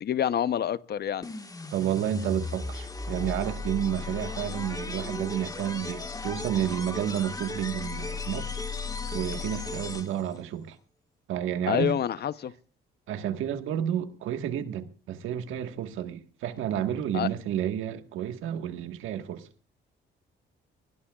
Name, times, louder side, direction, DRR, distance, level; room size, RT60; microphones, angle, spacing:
voice 1, 0.0-1.3 11.7-12.5 17.1-17.3, left 9 dB, 55° left, 0.8 m, -27 dB
sound 1, 1.2-10.4, left 3 dB, 20° left, 1.5 m, -36 dB
voice 2, 1.7-8.5 9.1-10.8 11.3-11.9 13.1-19.5, right 10 dB, 90° right, 1.5 m, -31 dB
25.0 x 20.0 x 2.4 m
cardioid pair, 90°, 20 cm